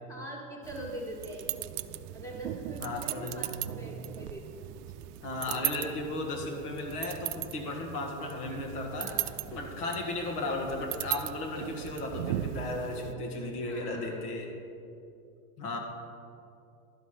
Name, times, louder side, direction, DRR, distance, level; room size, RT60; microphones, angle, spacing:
voice 1, 0.1-4.7 5.5-5.7 9.0-9.3 13.7-14.3, right 1 dB, 5° left, -2 dB, 1.4 m, -43 dB
sound 1, 0.6-13.1, right 14 dB, 80° right, 0.5 m, -38 dB
voice 2, 2.8-3.6 5.2-9.1 9.5-14.5 15.6-15.8, left 2 dB, 75° left, 1 dB, 1.7 m, -35 dB
12.0 x 5.0 x 5.8 m, 2.6 s
supercardioid pair, 150°, 46 cm